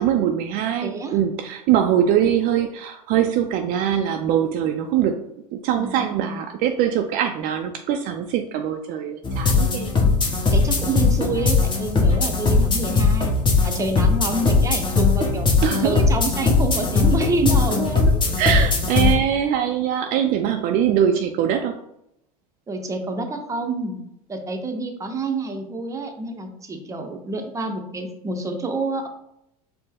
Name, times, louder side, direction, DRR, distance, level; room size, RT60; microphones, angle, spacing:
voice 1, 0.0-5.2 5.5-9.9 15.6-16.0 18.4-21.8, right 9 dB, 50° right, 5 dB, 0.4 m, -22 dB
voice 2, 0.8-1.2 5.8-6.4 10.0-13.4 13.6-15.5 15.8-18.4 22.7-24.0 24.3-29.1, right 2 dB, 15° right, 4 dB, 0.7 m, -28 dB
sound 1, 9.2-19.1, left 4 dB, 25° left, 1.0 m, -19 dB
4.2 x 2.1 x 3.4 m, 0.79 s
hypercardioid pair, 95°, 19 cm